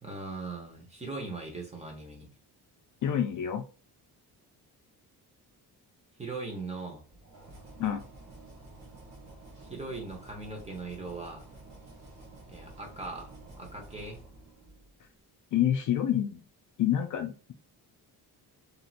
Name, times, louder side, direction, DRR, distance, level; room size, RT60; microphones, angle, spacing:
voice 1, 0.0-2.3 6.2-7.0 9.7-11.5 12.5-14.2, right 3 dB, 15° right, 1 dB, 1.1 m, -40 dB
voice 2, 3.0-3.6 7.8-8.0 15.5-16.4 16.8-17.5, left 10 dB, 50° left, 6 dB, 0.4 m, -27 dB
sound 1, 7.1-15.0, right 2 dB, 40° right, 1.4 m, -50 dB
3.0 x 2.8 x 2.5 m, 0.35 s
cardioid pair, 105°, 40 cm